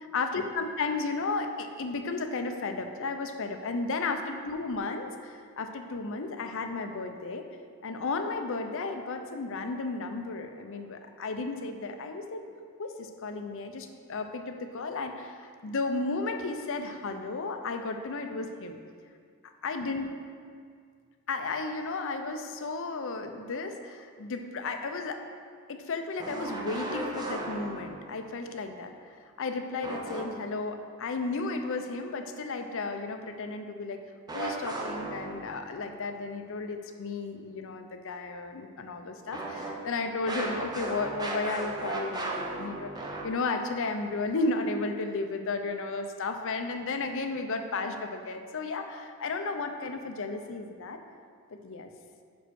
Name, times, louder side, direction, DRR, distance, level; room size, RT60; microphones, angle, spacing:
voice 1, 0.1-7.5 7.8-12.4 12.8-18.8 19.6-20.2 21.3-25.2 25.7-34.0 34.3-51.0 51.6-51.9, left 3 dB, 60° left, 6 dB, 0.6 m, -34 dB
sound 1, 26.2-28.2 29.8-30.7 34.3-35.7 39.3-43.7, right 2 dB, 20° right, 0.7 m, -36 dB
5.5 x 5.1 x 6.3 m, 2.1 s
head